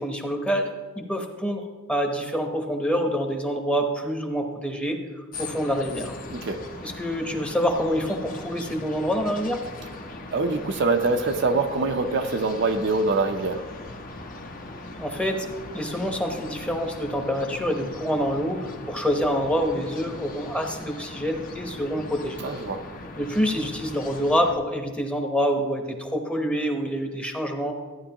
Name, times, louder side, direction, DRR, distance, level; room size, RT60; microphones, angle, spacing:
voice 1, 0.0-6.1 6.8-9.6 15.0-15.5 15.7-22.4 23.2-27.8, equal, 5° left, 3 dB, 0.9 m, -26 dB
sound 1, 5.3-24.6, left 2 dB, 40° left, 0.8 m, -40 dB
voice 2, 6.3-6.6 10.3-13.6 22.4-22.8, right 3 dB, 55° right, 6 dB, 0.6 m, -24 dB
14.0 x 9.6 x 2.9 m, 1.5 s
head